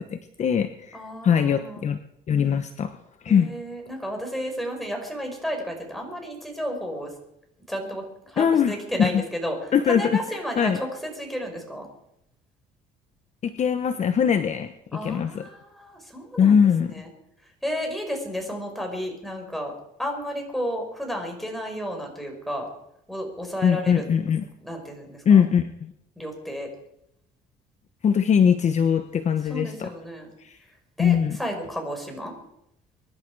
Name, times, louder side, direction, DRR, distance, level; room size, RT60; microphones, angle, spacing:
voice 1, 0.0-2.0 2.3-2.9 3.2-3.5 8.4-8.7 9.0-9.2 9.7-10.0 10.6-10.8 13.4-15.4 16.4-16.9 23.6-24.4 25.2-25.9 28.0-29.9 30.4-30.5 31.0-31.4, left 7 dB, 45° left, 8 dB, 1.0 m, -21 dB
voice 2, 0.9-1.9 3.3-7.1 7.7-11.9 14.9-16.6 16.9-17.1 17.6-19.7 20.0-22.7 23.1-24.0 24.6-25.4 26.2-26.7 29.4-30.3 31.0-32.3, equal, ahead, 2 dB, 5.2 m, -32 dB
24.0 x 11.0 x 4.8 m, 0.79 s
cardioid pair, 110°, 17 cm